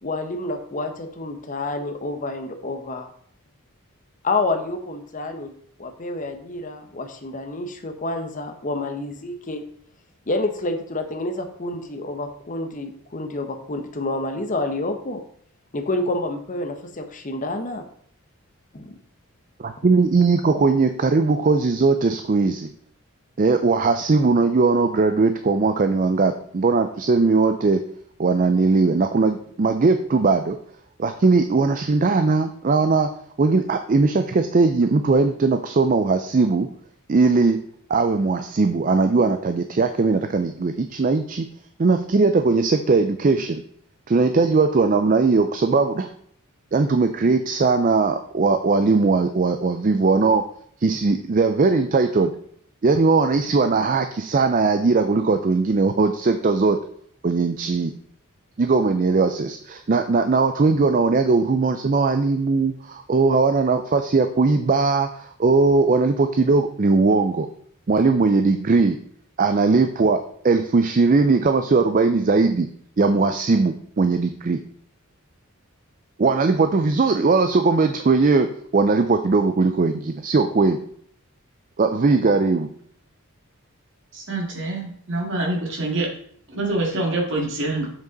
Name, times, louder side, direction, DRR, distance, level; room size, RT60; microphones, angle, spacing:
voice 1, 0.0-3.1 4.2-5.5 5.8-9.6 10.3-15.2 15.7-17.8 18.7-18.9, left 2 dB, 35° left, 7 dB, 0.7 m, -28 dB
voice 2, 19.6-22.7 23.4-27.8 28.2-30.6 31.0-33.1 33.4-36.7 37.1-41.5 41.8-43.6 44.1-46.1 46.7-50.4 50.8-52.3 52.8-56.8 57.2-57.9 58.6-67.5 67.9-69.0 69.4-70.2 70.4-72.7 73.0-74.6 76.2-80.8 81.8-82.7, right 4 dB, 35° right, 8 dB, 0.4 m, -19 dB
voice 3, 84.1-86.1 86.5-88.0, right 2 dB, 55° right, -1 dB, 2.1 m, -26 dB
7.5 x 5.3 x 3.9 m, 0.62 s
head